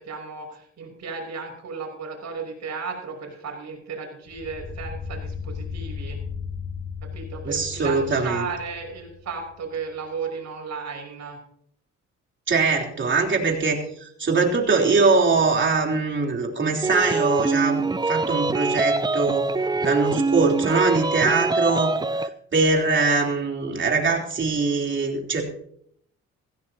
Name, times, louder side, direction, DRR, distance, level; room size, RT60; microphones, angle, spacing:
voice 1, 0.0-6.2 7.0-11.4, right 5 dB, 65° right, 2 dB, 5.9 m, -34 dB
sound 1, 4.3-9.5, left 5 dB, 55° left, 4.1 m, -36 dB
voice 2, 7.4-8.5 12.5-17.8 18.1-19.5 19.8-22.0 22.5-25.4, right 4 dB, 40° right, 1 dB, 3.5 m, -22 dB
sound 2, 16.8-22.3, right 3 dB, 15° right, 0.6 m, -24 dB
16.0 x 16.0 x 2.8 m, 0.68 s
cardioid pair, 90°, 30 cm